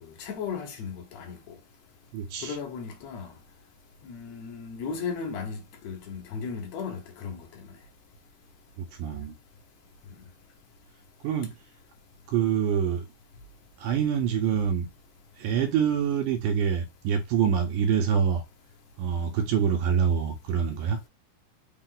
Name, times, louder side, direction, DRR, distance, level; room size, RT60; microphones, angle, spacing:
voice 1, 0.0-1.4 2.4-3.3 4.0-5.6 5.8-7.5, left 5 dB, 65° left, 2.1 m, -35 dB
voice 2, 2.1-2.6 8.8-9.3 11.2-11.5 12.3-13.1 13.8-14.9 15.4-18.4 19.0-21.0, right 7 dB, 80° right, 2.0 m, -26 dB
5.3 x 2.4 x 3.8 m
omnidirectional pair, 3.8 m